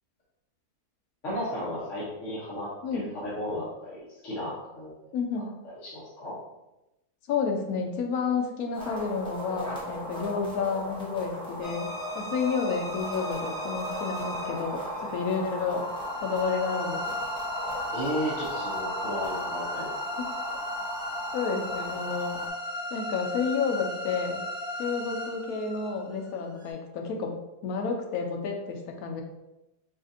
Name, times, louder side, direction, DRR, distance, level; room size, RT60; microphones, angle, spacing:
voice 1, 1.2-4.9 5.8-6.4 17.9-19.9, equal, 55° left, -9 dB, 1.3 m, -34 dB
voice 2, 5.1-5.5 7.3-11.9 12.1-15.9 16.2-17.0 20.2-20.3 21.3-22.4 22.9-24.5 24.8-27.3 27.6-29.2, left 5 dB, 75° left, 3 dB, 1.0 m, -30 dB
sound 1, 8.7-22.5, equal, 5° left, 0.4 m, -37 dB
sound 2, 11.6-26.7, left 1 dB, 55° right, 1.2 m, -36 dB
5.1 x 2.4 x 2.6 m, 0.95 s
omnidirectional pair, 1.6 m